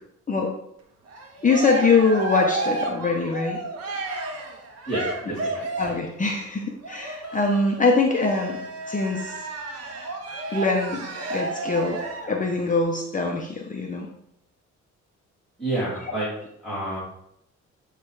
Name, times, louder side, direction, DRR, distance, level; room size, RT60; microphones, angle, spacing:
Cheering, 1.1-6.1 6.8-12.4, right 3 dB, 55° right, 1.4 m, -32 dB
voice 1, 1.4-3.6 5.8-8.6 8.9-9.4 10.5-11.0 11.3-12.0 12.3-14.1, left 3 dB, 25° left, 1 dB, 1.0 m, -23 dB
voice 2, 4.9-5.6 15.6-16.3 16.6-17.0, right 1 dB, ahead, -10 dB, 3.1 m, -28 dB
9.1 x 3.3 x 4.9 m, 0.76 s
cardioid pair, 90°, 30 cm